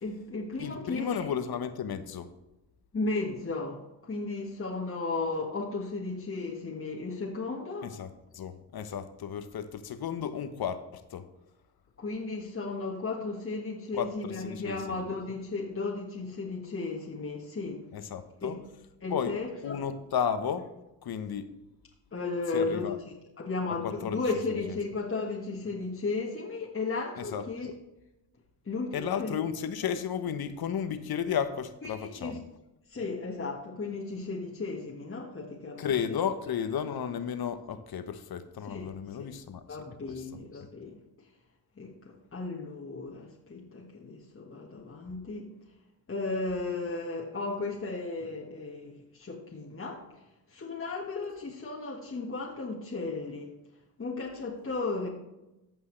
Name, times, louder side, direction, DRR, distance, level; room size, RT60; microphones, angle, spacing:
voice 1, 0.0-1.3 2.9-7.9 12.0-17.8 18.4-18.6 19.0-19.8 22.1-22.9 23.4-27.7 28.6-29.4 31.8-32.4 32.9-36.2 38.6-38.9 39.2-39.3 39.7-41.0 41.8-45.5 46.1-50.1 50.5-53.5 54.0-55.1, left 3 dB, 30° left, -2 dB, 1.6 m, -35 dB
voice 2, 0.6-2.3 7.8-11.2 13.9-15.0 17.9-18.6 19.1-19.3 19.6-20.7 21.0-21.5 22.5-23.0 23.8-24.2 27.2-27.4 28.9-32.4 35.8-39.6 40.1-40.2, left 8 dB, 55° left, 10 dB, 1.1 m, -33 dB
15.0 x 5.5 x 3.3 m, 0.96 s
supercardioid pair, 70°, 45 cm